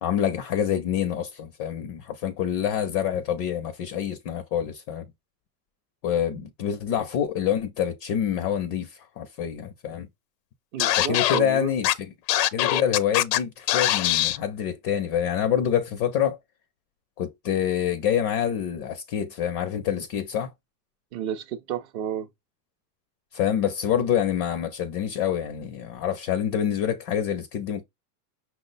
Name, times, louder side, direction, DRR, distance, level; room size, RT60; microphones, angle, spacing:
voice 1, 0.0-5.1 6.0-10.1 10.9-12.1 12.5-16.4 17.2-20.5 23.3-27.8, left 9 dB, 30° left, 0.4 m, -26 dB
voice 2, 10.7-11.7 21.1-22.3, right 9 dB, 35° right, 0.4 m, -31 dB
Scratching (performance technique), 10.8-11.4 11.8-11.9 12.3-13.4 13.7-14.4, left 14 dB, 90° left, 0.7 m, -22 dB
5.8 x 2.1 x 3.9 m
supercardioid pair, 155°, 49 cm